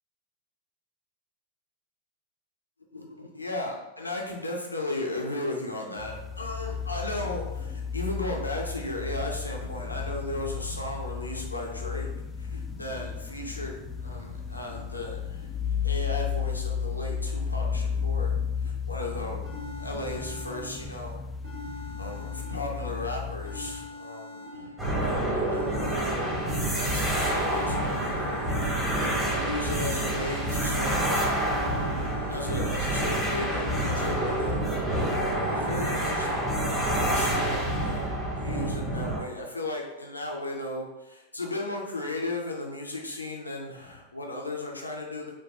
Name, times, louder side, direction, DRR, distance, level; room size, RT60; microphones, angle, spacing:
voice 1, 2.9-12.1 12.4-15.6 15.8-19.5 19.8-21.2 22.0-26.2 26.7-31.3 32.3-36.5 37.0-45.3, left 2 dB, 85° left, 0 dB, 0.5 m, -36 dB
sound 1, 6.0-23.9, left 6 dB, 10° left, 0.4 m, -33 dB
sound 2, 19.4-21.0 21.4-23.0 23.4-25.0 25.4-27.0 27.4-29.0 29.4-31.0 31.4-33.0 33.4-35.0 35.4-36.2, left 2 dB, 60° right, 1.1 m, -43 dB
sound 3, 24.8-39.2, right 1 dB, 10° right, 0.9 m, -27 dB
4.4 x 2.2 x 2.8 m, 1.0 s
figure-of-eight pair, 90°, 0 cm